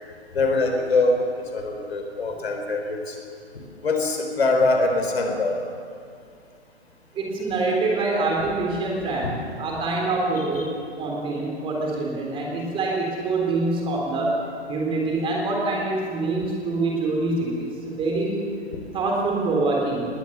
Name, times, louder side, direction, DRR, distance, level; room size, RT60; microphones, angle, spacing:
voice 1, 0.3-3.2 3.8-5.6 9.2-9.3, left 2 dB, 65° left, 4 dB, 4.1 m, -23 dB
voice 2, 7.1-10.7 11.0-14.3 14.7-18.3 18.9-20.1, right 3 dB, 15° right, -1 dB, 3.7 m, -25 dB
20.0 x 18.5 x 7.0 m, 2.3 s
figure-of-eight pair, 125°, 34 cm